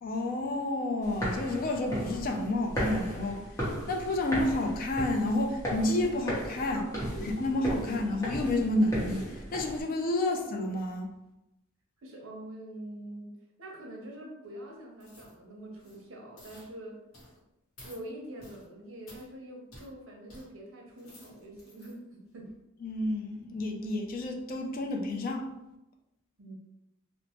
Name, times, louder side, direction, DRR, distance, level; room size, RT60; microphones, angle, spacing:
voice 1, 0.0-6.9 7.2-11.1 22.8-25.5, left 1 dB, 40° left, 3 dB, 0.3 m, -30 dB
sound 1, 1.0-9.8, equal, 15° left, 0.8 m, -36 dB
voice 2, 6.7-7.3 12.0-13.3 13.6-17.0 17.8-22.5 26.4-26.5, right 1 dB, 65° right, -1 dB, 0.7 m, -45 dB
sound 2, 15.0-15.4 15.7-16.0 16.4-16.7 17.1-17.4 17.8-18.0 18.4-18.7 19.1-19.3 19.7-19.9 20.3-20.5 20.9-21.9 22.4-22.5, left 1 dB, 85° left, 1.0 m, -53 dB
2.9 x 2.0 x 2.8 m, 0.91 s
head